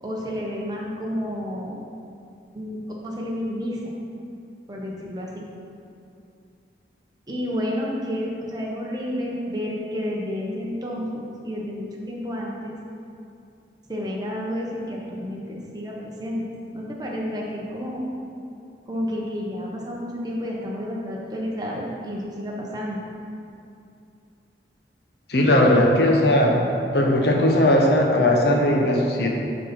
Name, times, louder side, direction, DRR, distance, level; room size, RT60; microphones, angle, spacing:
voice 1, 0.0-1.7 2.5-3.8 4.7-5.4 7.3-12.7 13.9-16.5 16.7-18.0 18.9-23.0, equal, 20° right, -3 dB, 1.2 m, -30 dB
voice 2, 25.3-26.6 26.9-29.3, left 1 dB, 65° left, 0 dB, 1.2 m, -18 dB
11.0 x 4.2 x 5.4 m, 2.6 s
head